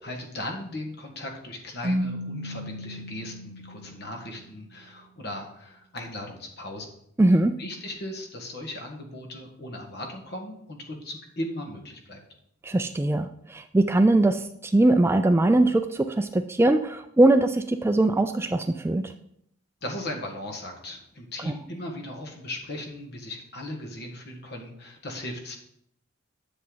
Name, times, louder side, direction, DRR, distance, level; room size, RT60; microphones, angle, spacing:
voice 1, 0.0-6.9 7.6-12.2 19.8-25.6, left 1 dB, 50° left, 2 dB, 1.7 m, -37 dB
Keyboard (musical), 1.8-4.6, equal, 30° right, 1.2 m, -33 dB
voice 2, 7.2-7.5 12.6-19.1 21.5-21.6, right 2 dB, 10° right, 8 dB, 0.3 m, -21 dB
10.0 x 7.0 x 3.9 m, 0.72 s
head